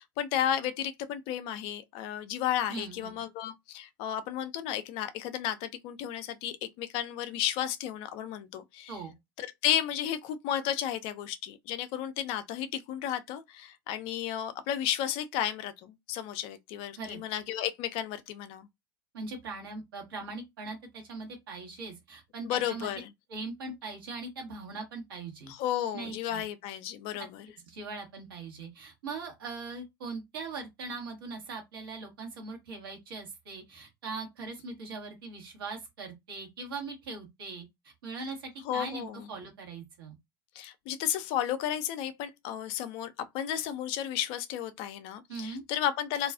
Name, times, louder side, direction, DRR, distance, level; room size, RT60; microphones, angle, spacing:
voice 1, 0.0-8.9 9.4-18.7 22.4-23.1 25.5-27.5 38.7-39.3 40.6-46.3, left 10 dB, 50° left, 0.4 m, -33 dB
voice 2, 2.7-3.2 8.9-9.1 16.9-17.2 19.1-22.9 23.3-25.5 25.9-26.4 27.2-27.3 27.7-40.2 45.3-45.6, right 3 dB, 70° right, 1.1 m, -40 dB
2.4 x 2.3 x 2.3 m
figure-of-eight pair, 75°, 12 cm